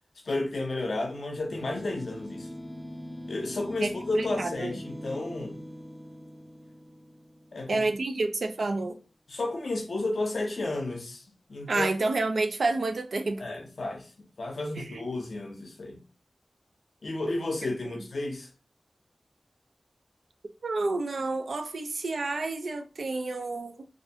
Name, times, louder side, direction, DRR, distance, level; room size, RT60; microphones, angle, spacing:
voice 1, 0.2-2.5 3.3-5.6 7.5-7.9 9.3-11.2 11.5-11.9 13.4-14.1 14.4-16.0 17.0-18.5, left 2 dB, 80° left, 0.5 m, -32 dB
sound 1, 1.5-8.1, equal, ahead, 0.3 m, -42 dB
voice 2, 4.1-4.7 7.7-8.9 11.7-13.4 14.8-15.0 17.8-17.9 20.6-23.8, right 3 dB, 85° right, 0.3 m, -29 dB
2.5 x 2.1 x 2.7 m
wide cardioid pair, 50°, 0 cm